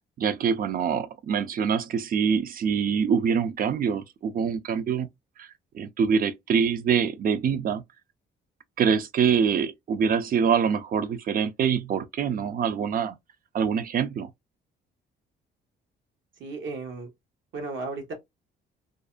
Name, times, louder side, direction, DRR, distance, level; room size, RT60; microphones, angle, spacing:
voice 1, 0.2-5.1 5.4-5.5 5.7-7.8 8.8-13.2 13.5-14.3, right 7 dB, 45° right, 0.5 m, -25 dB
voice 2, 16.4-17.1 17.5-18.1, right 3 dB, 75° right, 1.1 m, -34 dB
2.5 x 2.1 x 2.4 m
cardioid pair, 90°, 20 cm